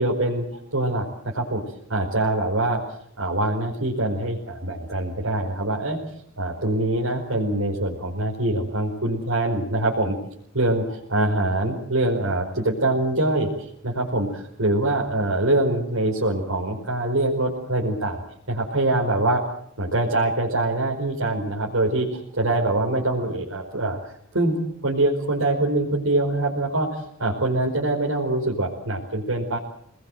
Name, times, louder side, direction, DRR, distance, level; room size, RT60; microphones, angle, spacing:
voice 1, 0.0-1.6 1.9-2.8 3.2-6.0 6.4-10.2 10.5-18.2 18.5-19.4 19.8-24.0 24.3-24.6 24.8-29.6, right 2 dB, 85° right, -3 dB, 4.9 m, -24 dB
28.5 x 20.5 x 7.8 m, 0.73 s
head